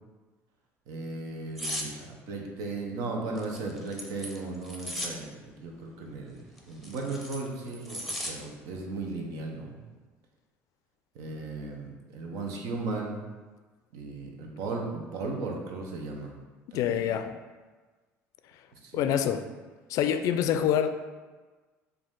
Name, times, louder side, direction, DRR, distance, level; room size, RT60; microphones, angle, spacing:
voice 1, 0.9-9.8 11.1-13.2 13.9-16.3 16.7-17.1 18.7-19.1 20.4-20.6, right 3 dB, 75° right, 1 dB, 0.8 m, -36 dB
sound 1, 1.6-1.9 3.4-5.2 6.6-8.3 8.7-9.0, equal, ahead, 0.8 m, -36 dB
voice 2, 16.7-17.4 18.9-19.4 19.9-20.9, left 9 dB, 65° left, 9 dB, 0.3 m, -26 dB
4.9 x 2.6 x 3.7 m, 1.3 s
supercardioid pair, 90°, 6 cm